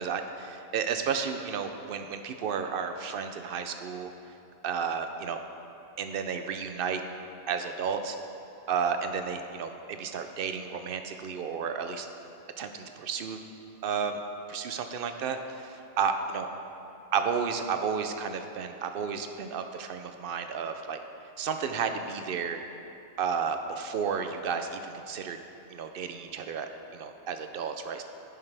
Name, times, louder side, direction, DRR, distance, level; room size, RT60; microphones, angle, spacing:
voice 1, 0.0-4.1 4.6-5.4 6.0-7.0 7.5-8.2 8.7-12.1 12.6-13.4 13.8-14.2 14.5-16.5 17.1-21.0 21.4-22.6 23.2-25.4 25.7-28.0, right 6 dB, 60° right, 7 dB, 0.7 m, -32 dB
10.5 x 7.2 x 3.4 m, 2.7 s
omnidirectional pair, 1.2 m